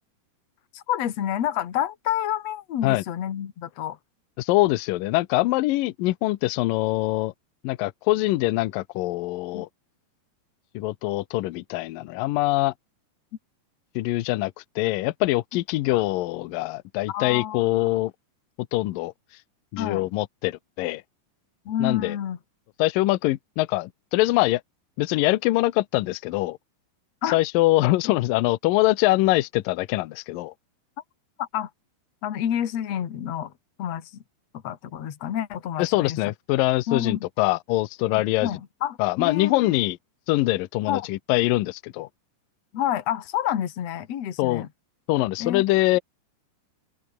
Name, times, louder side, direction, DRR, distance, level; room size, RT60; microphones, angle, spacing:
voice 1, 0.7-4.0 9.5-9.6 17.1-17.6 19.8-20.1 21.7-22.4 27.2-27.4 31.4-31.7 32.2-33.5 33.8-34.1 34.6-36.2 36.9-37.2 38.1-39.7 40.9-41.1 42.7-44.7 45.4-45.6, left 10 dB, 50° left, 2.3 m, -29 dB
voice 2, 4.4-7.3 7.6-9.7 10.7-12.7 14.0-18.1 18.7-19.1 19.7-21.0 21.8-22.2 22.8-24.6 25.0-26.6 27.3-30.5 35.8-38.5 39.0-40.0 40.3-42.1 44.4-44.6 45.1-46.0, left 18 dB, 80° left, 2.0 m, -23 dB
open air
omnidirectional pair, 5.1 m